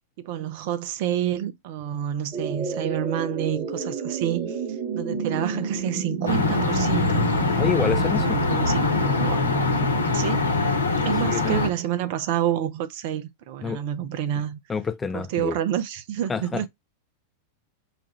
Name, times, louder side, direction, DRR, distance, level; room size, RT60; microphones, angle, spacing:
voice 1, 0.2-7.3 8.2-9.4 10.1-10.5 11.0-14.6 15.1-16.7, right 10 dB, 50° right, 0.6 m, -28 dB
sound 1, 2.3-10.9, right 4 dB, 25° right, 1.3 m, -31 dB
sound 2, 6.3-11.7, left 3 dB, 80° left, 0.9 m, -23 dB
voice 2, 7.6-8.4 10.9-11.7 13.6-13.8 14.7-15.6 16.3-16.7, left 6 dB, 15° left, 0.4 m, -28 dB
5.0 x 2.3 x 2.9 m
figure-of-eight pair, 90°, 0 cm